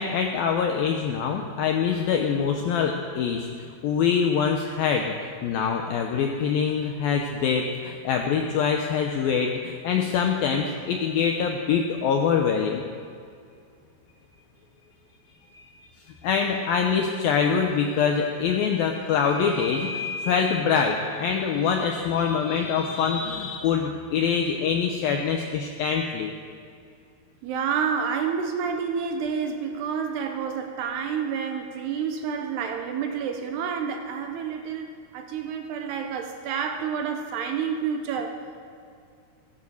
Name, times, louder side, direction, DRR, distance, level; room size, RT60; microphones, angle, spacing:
voice 1, 0.0-5.1 5.4-12.8 15.5-15.6 16.2-26.3, left 6 dB, 80° left, 3 dB, 2.1 m, -24 dB
voice 2, 27.4-38.6, right 6 dB, 75° right, 5 dB, 2.8 m, -29 dB
16.0 x 10.0 x 7.0 m, 2.3 s
omnidirectional pair, 5.2 m